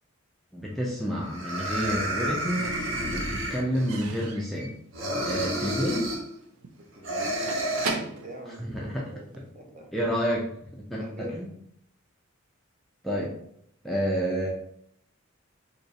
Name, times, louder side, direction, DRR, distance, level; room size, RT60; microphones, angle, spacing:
voice 1, 0.5-2.7 3.1-4.7 5.2-6.1 8.6-9.0 9.9-10.5 10.9-11.5 13.0-13.4 13.8-14.5, equal, ahead, -4 dB, 0.4 m, -29 dB
sound 1, 0.7-0.8 1.2-4.0 4.9-6.3 7.0-7.9, right 1 dB, 60° right, 0.9 m, -30 dB
Slam / Squeak / Wood, 3.1-9.5, right 4 dB, 85° right, 0.5 m, -39 dB
voice 2, 5.0-5.3 6.9-7.6 7.9-9.3 9.5-9.9 11.0-11.5, equal, 35° right, 0 dB, 0.8 m, -44 dB
3.0 x 2.5 x 4.1 m, 0.71 s
head